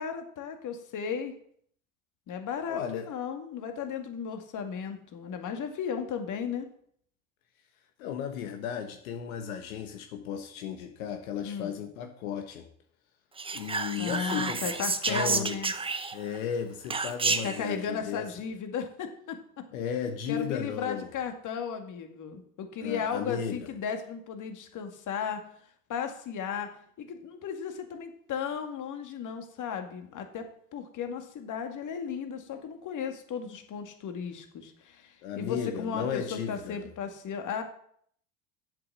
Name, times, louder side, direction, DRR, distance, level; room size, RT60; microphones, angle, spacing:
voice 1, 0.0-1.3 2.3-6.7 11.4-11.8 14.0-15.7 17.4-19.6 20.3-25.4 25.9-26.7 27.0-37.6, left 7 dB, 45° left, 6 dB, 2.1 m, -35 dB
voice 2, 2.7-3.1 8.0-12.7 13.5-14.8 15.1-15.6 16.1-18.3 19.7-21.1 22.8-23.7 35.2-36.8, left 8 dB, 80° left, 5 dB, 1.4 m, -35 dB
Whispering, 13.4-16.4 16.9-17.6, right 4 dB, 15° right, 0.8 m, -30 dB
8.3 x 7.7 x 7.5 m, 0.64 s
hypercardioid pair, 85°, 42 cm